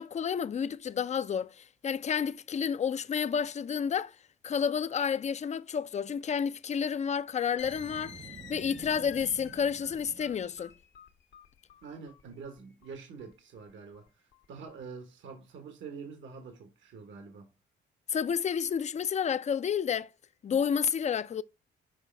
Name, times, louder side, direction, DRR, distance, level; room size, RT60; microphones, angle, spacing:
voice 1, 0.0-4.1 4.4-8.2 8.5-10.7 18.1-20.1 20.4-21.4, left 7 dB, 35° left, 0.5 m, -30 dB
sound 1, 7.6-14.8, left 8 dB, 70° left, 1.3 m, -51 dB
Boom, 7.6-10.7, right 6 dB, 30° right, 0.4 m, -50 dB
voice 2, 11.8-17.5, right 5 dB, 75° right, 1.4 m, -46 dB
6.4 x 4.9 x 3.3 m
cardioid pair, 90°, 20 cm